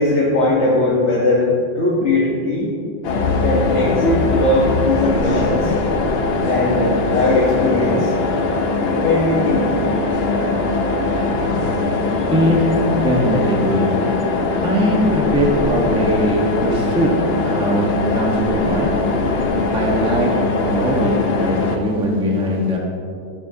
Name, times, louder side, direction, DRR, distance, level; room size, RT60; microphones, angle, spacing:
voice 1, 0.0-2.7 3.4-5.7 6.4-8.1 8.8-9.7, left 2 dB, 40° left, -5 dB, 1.4 m, -19 dB
sound 1, 3.0-21.8, left 3 dB, 65° left, 0.6 m, -20 dB
voice 2, 12.3-12.7 13.0-13.9 14.6-17.1 17.4-18.9 19.7-20.3 20.6-22.8, equal, 5° right, -2 dB, 1.0 m, -20 dB
13.0 x 10.5 x 2.9 m, 2.5 s
omnidirectional pair, 2.2 m